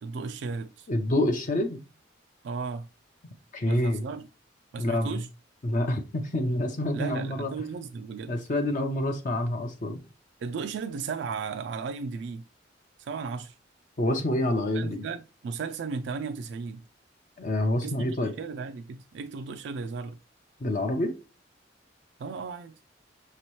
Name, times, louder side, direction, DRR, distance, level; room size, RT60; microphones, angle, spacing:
voice 1, 0.0-0.9 2.4-2.9 3.6-4.3 4.7-5.3 6.9-8.4 10.4-12.4 13.0-13.6 14.7-16.8 17.8-20.2 22.2-22.7, right 5 dB, 65° right, 0.3 m, -35 dB
voice 2, 0.9-1.8 3.5-4.0 4.8-5.2 5.6-7.5 8.3-10.0 14.0-15.0 17.4-18.3 20.6-21.1, left 1 dB, 45° left, 0.5 m, -27 dB
6.0 x 2.8 x 3.0 m
head